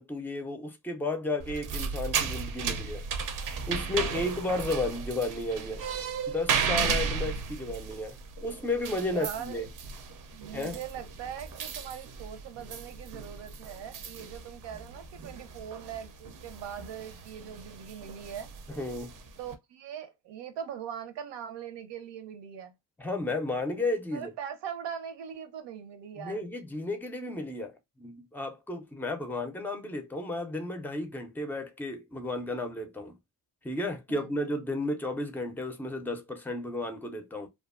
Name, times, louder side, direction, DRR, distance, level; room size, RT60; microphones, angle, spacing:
voice 1, 0.0-3.1 3.7-5.8 6.3-9.7 10.5-10.8 18.7-19.2 23.0-24.3 26.2-33.2 33.6-37.5, left 2 dB, 5° left, 0.4 m, -33 dB
sound 1, 1.4-19.5, right 6 dB, 50° right, 0.6 m, -35 dB
voice 2, 9.0-9.6 10.3-18.5 19.4-22.7 24.1-26.5 34.1-34.4, right 8 dB, 85° right, 0.8 m, -41 dB
2.7 x 2.4 x 2.4 m
cardioid pair, 150°, 41 cm